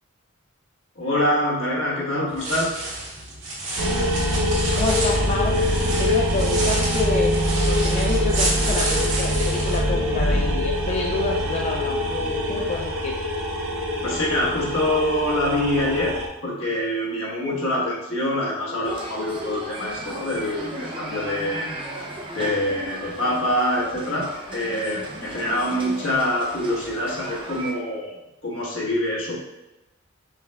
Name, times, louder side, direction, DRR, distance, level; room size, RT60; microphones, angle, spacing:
voice 1, 0.9-2.8 14.0-21.7 22.3-28.1 28.4-29.4, left 1 dB, 70° left, -5 dB, 1.2 m, -25 dB
sound 1, 2.3-9.8, right 2 dB, 65° right, 1.4 m, -30 dB
sound 2, 3.8-16.3, equal, 90° right, 0.7 m, -24 dB
voice 2, 4.7-7.3 7.7-13.2, left 3 dB, 35° left, 0 dB, 0.3 m, -29 dB
sound 3, 18.8-27.7, right 1 dB, 25° right, 0.6 m, -36 dB
5.5 x 3.3 x 2.3 m, 0.98 s
head